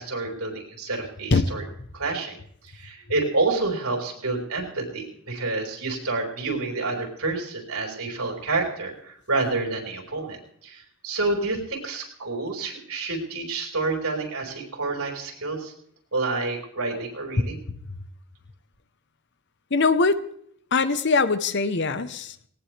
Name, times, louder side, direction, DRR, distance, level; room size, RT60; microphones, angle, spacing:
voice 1, 0.0-1.6 1.9-2.3 2.6-15.7 16.1-17.6, right 3 dB, 90° right, 1 dB, 4.6 m, -28 dB
voice 2, 1.3-1.7 17.7-17.8 19.7-20.2 20.7-22.5, left 4 dB, 55° left, 12 dB, 0.9 m, -22 dB
19.0 x 18.5 x 3.3 m, 0.65 s
head